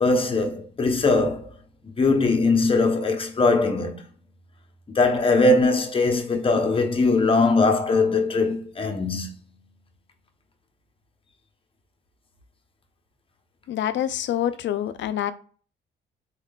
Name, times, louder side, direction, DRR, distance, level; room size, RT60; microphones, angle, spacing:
voice 1, 0.0-1.5 2.0-4.0 4.9-9.3, left 3 dB, 25° left, 0.9 m, -21 dB
voice 2, 13.7-15.3, left 11 dB, 65° left, 0.5 m, -26 dB
4.4 x 3.6 x 2.4 m
cardioid pair, 90°, 20 cm